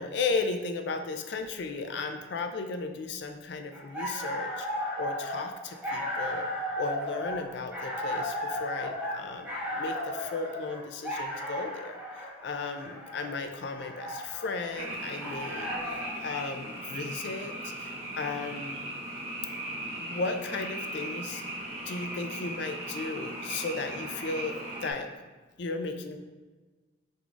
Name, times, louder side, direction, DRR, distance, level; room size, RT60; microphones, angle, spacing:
voice 1, 0.0-4.7 5.0-6.5 6.8-18.9 19.8-21.4 21.8-25.1 25.6-26.2, left 4 dB, 60° left, 6 dB, 0.4 m, -35 dB
sound 1, 3.7-16.2, left 1 dB, 10° right, 1.0 m, -35 dB
Frog, 14.7-24.9, right 1 dB, 35° right, 1.0 m, -38 dB
4.6 x 3.9 x 2.4 m, 1.3 s
head